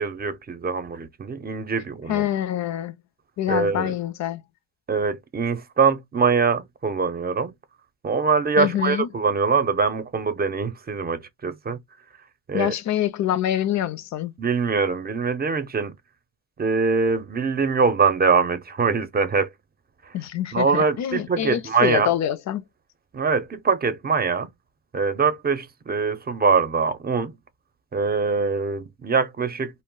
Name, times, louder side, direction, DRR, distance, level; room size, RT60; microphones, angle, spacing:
voice 1, 0.0-2.3 3.5-3.9 4.9-7.5 8.0-11.8 12.5-12.7 14.4-15.9 16.6-19.5 20.1-20.2 20.5-22.1 23.1-24.5 24.9-27.3 27.9-29.8, right 5 dB, 30° right, 0.6 m, -23 dB
voice 2, 2.1-2.9 3.4-4.4 8.6-9.1 12.5-14.3 20.1-22.6, left 11 dB, 65° left, 0.5 m, -25 dB
2.3 x 2.1 x 3.7 m
cardioid pair, 90°, 30 cm